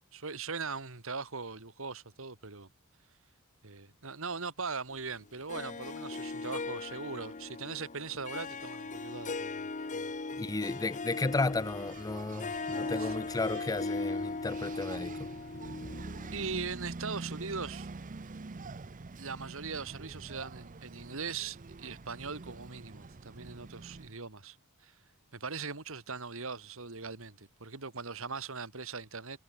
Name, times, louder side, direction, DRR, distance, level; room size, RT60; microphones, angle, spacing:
voice 1, 0.0-2.7 3.6-10.1 13.0-13.1 16.3-17.9 19.2-24.6 24.8-24.9 25.3-29.4, right 4 dB, 70° right, 2.3 m, -40 dB
Harp, 5.5-16.6, left 3 dB, 35° left, 1.0 m, -38 dB
voice 2, 10.4-15.3, left 3 dB, 15° left, 0.5 m, -33 dB
Engine, 11.2-24.2, right 3 dB, 40° right, 0.7 m, -46 dB
head